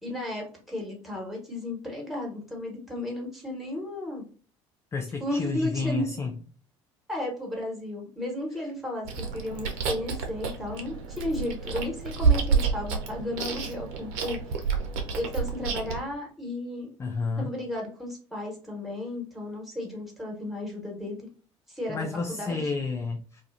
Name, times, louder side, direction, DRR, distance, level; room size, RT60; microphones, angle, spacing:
voice 1, 0.0-4.2 5.2-6.1 7.1-14.4 15.1-16.9 17.4-21.3 21.7-22.6, left 1 dB, ahead, 1.2 m, -34 dB
voice 2, 4.9-6.3 17.0-17.5 21.9-23.4, left 4 dB, 15° left, 0.4 m, -30 dB
Chewing mastication, 9.1-16.0, right 5 dB, 60° right, 0.6 m, -29 dB
2.3 x 2.2 x 2.4 m
figure-of-eight pair, 60°, 16 cm